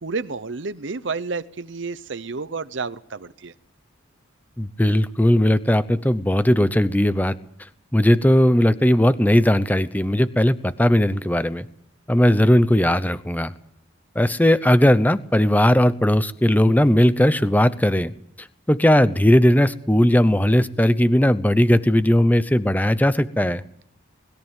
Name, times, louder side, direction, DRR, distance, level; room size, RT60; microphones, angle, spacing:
voice 1, 0.0-3.5, right 4 dB, 65° right, 14 dB, 0.8 m, -30 dB
voice 2, 4.6-7.4 7.9-11.7 12.1-13.5 14.1-18.1 18.4-23.6, equal, 10° left, 14 dB, 0.8 m, -18 dB
21.0 x 13.5 x 9.1 m, 0.71 s
head